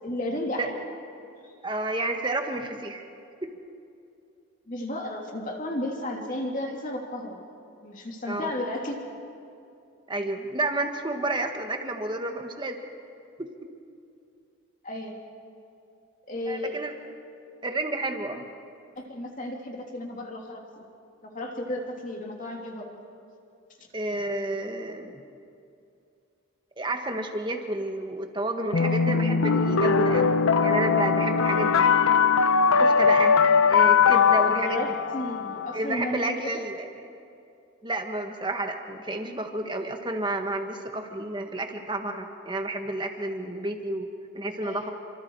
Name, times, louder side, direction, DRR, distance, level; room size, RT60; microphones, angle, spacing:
voice 1, 0.0-0.8 1.4-1.5 4.7-7.4 7.8-9.0 14.8-15.1 16.3-16.8 18.9-20.8 21.2-23.0 34.5-36.5 44.6-44.9, left 1 dB, 40° left, 1 dB, 3.0 m, -33 dB
voice 2, 1.6-3.1 3.4-3.5 8.3-8.5 10.1-12.8 13.4-13.5 16.5-16.9 17.6-18.4 23.9-25.2 26.8-31.8 32.8-33.4 33.7-34.8 35.7-36.9 37.8-44.1 44.3-44.9, right 2 dB, 20° right, 5 dB, 1.5 m, -30 dB
sound 1, 28.7-35.7, left 5 dB, 80° left, 0.8 m, -21 dB
29.0 x 25.5 x 4.8 m, 2.6 s
head